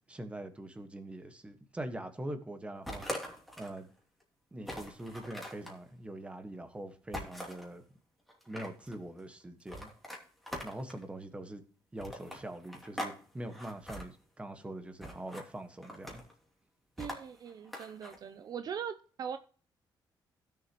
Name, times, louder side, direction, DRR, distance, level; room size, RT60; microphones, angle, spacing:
voice 1, 0.1-3.1 3.6-3.9 4.5-7.8 8.5-9.9 10.6-11.6 11.9-16.2, right 1 dB, 15° right, 1.5 m, -43 dB
sound 1, 2.9-3.8 4.2-4.3 4.6-5.8 7.1-7.7 8.3-9.0 9.7-11.0 12.0-13.2 13.4-14.0 15.0-15.5 15.8-16.3 17.0-18.2, equal, ahead, 2.9 m, -42 dB
voice 2, 17.0-19.4, right 7 dB, 55° right, 0.6 m, -40 dB
16.0 x 7.1 x 3.0 m
cardioid pair, 120°, 8 cm